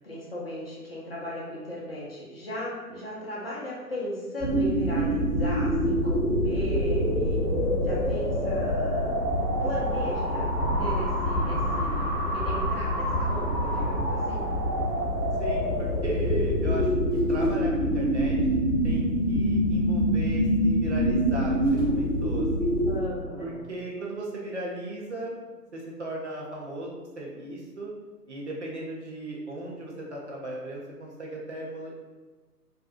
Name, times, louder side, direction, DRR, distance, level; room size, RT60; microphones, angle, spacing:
voice 1, 0.0-7.4 7.8-9.2 9.6-14.5 22.9-23.6, left 1 dB, 40° left, -6 dB, 0.5 m, -36 dB
sound 1, 4.4-23.0, equal, ahead, 1.0 m, -25 dB
voice 2, 15.4-18.6 18.8-21.6 21.9-22.7 23.4-25.4 25.7-27.9 28.3-32.1, right 1 dB, 50° right, -3 dB, 0.5 m, -37 dB
2.5 x 2.2 x 2.4 m, 1.3 s
figure-of-eight pair, 135°, 48 cm